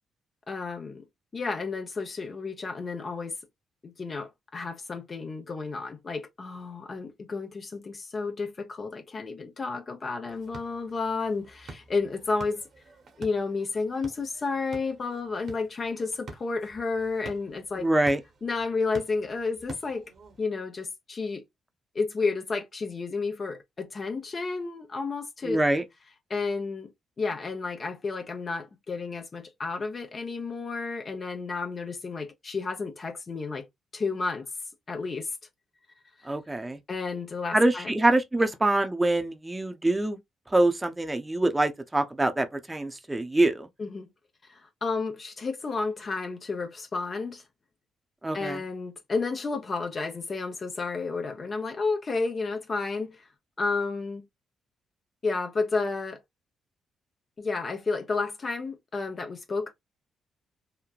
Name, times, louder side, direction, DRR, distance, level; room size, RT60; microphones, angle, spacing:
voice 1, 0.5-1.0 1.3-3.4 3.8-12.6 13.2-17.9 18.4-20.0 20.4-21.4 21.9-25.6 26.3-26.9 27.2-33.7 33.9-34.5 34.9-35.3 36.9-38.0 43.8-44.1 44.4-47.4 48.3-53.2 53.6-54.2 55.2-56.2 57.4-59.7, left 4 dB, 45° left, 0.7 m, -31 dB
sound 1, 10.3-20.4, right 2 dB, 60° right, 1.0 m, -48 dB
voice 2, 17.8-18.2 25.4-25.8 36.2-36.8 37.5-40.2 40.5-43.7 48.2-48.6, right 2 dB, 15° right, 0.7 m, -25 dB
3.0 x 2.1 x 2.4 m
supercardioid pair, 65°, 0 cm